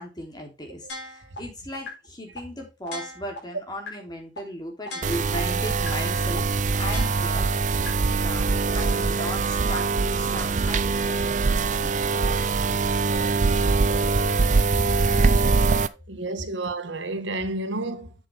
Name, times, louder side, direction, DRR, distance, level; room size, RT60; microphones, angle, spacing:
voice 1, 0.0-6.5 6.8-7.8 8.1-12.6, equal, 25° left, 3.2 m, -37 dB
sound 1, 0.9-1.4 1.9-2.0 2.4-2.5 2.9-3.4 3.9-4.0 4.4-4.5 4.9-5.4 5.9-6.0 6.4-6.5 6.9-7.4 7.9-8.0, left 2 dB, 70° left, 4.6 m, -36 dB
sound 2, 5.0-15.9, right 4 dB, 45° right, 0.5 m, -23 dB
voice 2, 13.0-13.4 13.9-14.4 15.2-18.1, right 2 dB, 80° right, 1.4 m, -33 dB
7.7 x 7.2 x 3.5 m
head